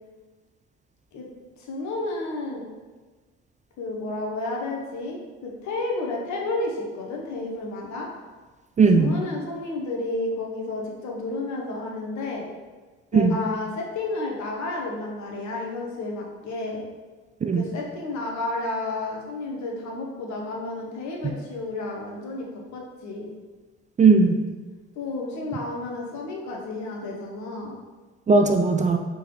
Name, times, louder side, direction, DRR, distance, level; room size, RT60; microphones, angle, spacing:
voice 1, 1.6-2.7 3.8-8.1 8.9-12.4 13.1-16.8 17.5-23.3 25.0-27.7, left 2 dB, 60° left, -1 dB, 1.1 m, -31 dB
voice 2, 8.8-9.1 13.1-13.4 17.4-17.6 21.2-21.3 24.0-24.4 28.3-29.0, right 4 dB, 25° right, 4 dB, 0.4 m, -18 dB
4.5 x 3.8 x 3.1 m, 1.3 s
hypercardioid pair, 50°, 32 cm